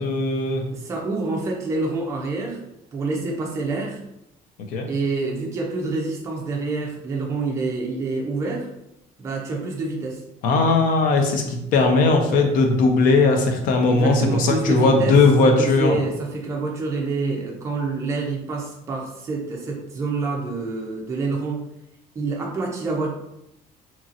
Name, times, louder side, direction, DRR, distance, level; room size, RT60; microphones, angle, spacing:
voice 1, 0.0-0.6 4.7-4.9 10.4-16.0, left 3 dB, 65° left, 4 dB, 0.5 m, -18 dB
voice 2, 0.7-2.6 2.9-4.0 4.9-8.7 9.2-10.2 13.9-21.6 22.2-23.1, right 3 dB, 20° right, -1 dB, 0.4 m, -27 dB
2.9 x 2.7 x 2.4 m, 0.85 s
cardioid pair, 180°, 15 cm